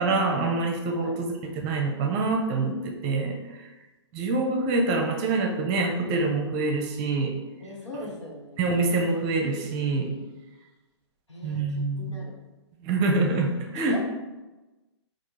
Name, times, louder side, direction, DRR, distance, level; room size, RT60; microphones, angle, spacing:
voice 1, 0.0-3.4 4.1-7.3 8.6-10.2 11.4-12.1 12.8-14.0, right 3 dB, 30° right, 2 dB, 0.6 m, -25 dB
voice 2, 7.6-8.7 11.3-12.4 13.7-14.0, left 1 dB, 90° left, -3 dB, 1.3 m, -40 dB
3.5 x 2.5 x 4.5 m, 1.1 s
figure-of-eight pair, 120°, 15 cm